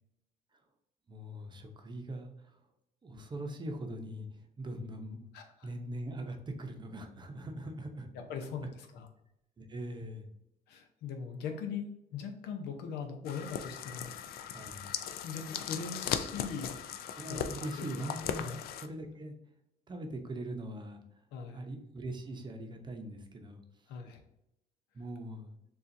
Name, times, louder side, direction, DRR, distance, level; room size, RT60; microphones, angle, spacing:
voice 1, 1.1-2.6 3.0-5.3 5.6-8.1 9.6-10.3 14.5-14.9 17.2-19.3 19.9-21.0 21.5-23.6 24.9-25.5, right 1 dB, 25° right, 4 dB, 0.7 m, -41 dB
voice 2, 5.3-5.7 8.1-9.1 10.7-11.8 12.1-14.1 15.2-16.8 17.3-17.4 17.8-18.0 18.4-18.6 21.3-21.6 23.9-24.2, left 6 dB, 85° left, 4 dB, 0.8 m, -40 dB
sound 1, 13.2-18.9, left 9 dB, 65° left, 0.4 m, -38 dB
6.8 x 2.4 x 2.6 m, 0.84 s
cardioid pair, 110°, 17 cm